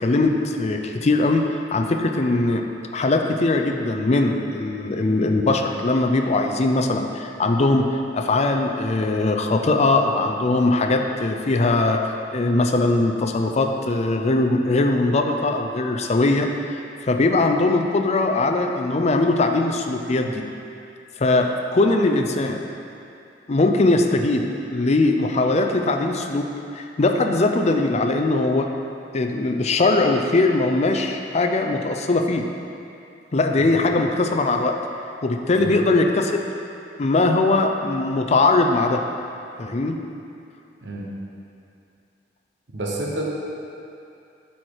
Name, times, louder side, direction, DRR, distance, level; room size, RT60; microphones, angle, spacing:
voice 1, 0.0-2.6 2.9-12.0 12.3-20.4 21.2-22.7 23.5-24.4 24.7-26.5 26.7-28.7 29.1-32.5 33.3-34.7 35.2-36.5 37.0-39.0 39.6-40.0, left 2 dB, 40° left, 4 dB, 0.5 m, -20 dB
voice 2, 42.7-43.2, right 1 dB, 85° right, -2 dB, 1.1 m, -29 dB
8.4 x 4.5 x 4.8 m, 2.6 s
head